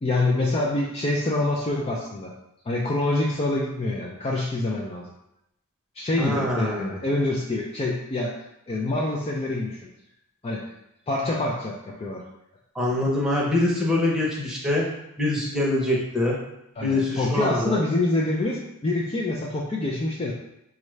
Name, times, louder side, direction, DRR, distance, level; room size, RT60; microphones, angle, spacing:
voice 1, 0.0-2.3 2.6-5.1 6.0-8.3 8.7-9.9 10.4-10.6 11.1-12.2 16.8-20.3, left 2 dB, 25° left, -3 dB, 0.4 m, -26 dB
voice 2, 6.2-7.0 12.7-14.9 15.2-16.4 16.8-17.8, left 1 dB, 5° right, -5 dB, 0.8 m, -24 dB
5.2 x 2.4 x 3.2 m, 0.83 s
head